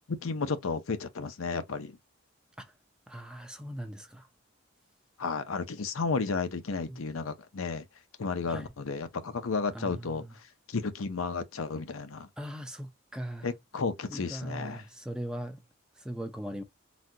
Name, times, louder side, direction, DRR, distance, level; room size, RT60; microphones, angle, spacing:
voice 1, 0.2-2.0 5.2-7.8 8.2-10.2 10.7-12.3 13.4-14.9, left 4 dB, 90° left, 0.7 m, -33 dB
voice 2, 3.1-4.3 6.9-7.0 8.5-8.7 9.7-10.3 12.4-13.5 14.1-15.6 16.0-16.6, right 1 dB, 5° right, 0.6 m, -39 dB
4.1 x 2.4 x 2.7 m
head